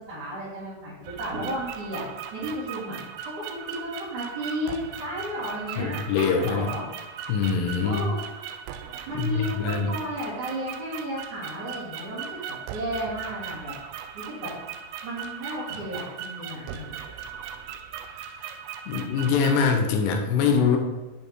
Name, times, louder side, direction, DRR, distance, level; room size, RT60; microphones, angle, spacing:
voice 1, 0.1-2.0 2.3-3.0 3.5-6.8 7.8-8.2 9.1-13.7 14.1-14.5 15.0-16.8, equal, 50° right, -12 dB, 4.0 m, -33 dB
sound 1, 1.0-19.7, right 8 dB, 85° right, 2.6 m, -38 dB
voice 2, 5.8-6.7 7.3-8.0 9.1-10.0 18.9-20.8, left 6 dB, 80° left, 4 dB, 3.0 m, -23 dB
9.2 x 5.6 x 4.6 m, 1.1 s
omnidirectional pair, 4.8 m